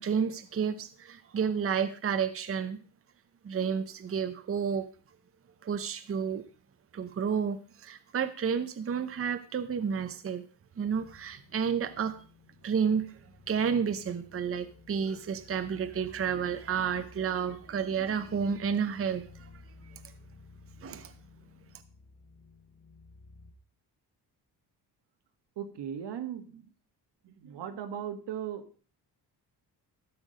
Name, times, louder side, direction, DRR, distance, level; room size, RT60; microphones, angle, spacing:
voice 1, 0.0-2.8 3.4-4.9 5.6-6.4 6.9-10.4 10.8-12.2 12.6-13.1 13.5-19.5 20.8-21.1, right 7 dB, 35° right, 11 dB, 0.8 m, -31 dB
sound 1, 10.8-23.5, left 3 dB, 35° left, 2.2 m, -55 dB
voice 2, 25.6-26.7 27.2-28.7, right 9 dB, 75° right, 8 dB, 1.5 m, -38 dB
13.0 x 6.1 x 5.1 m, 0.40 s
cardioid pair, 110°, 41 cm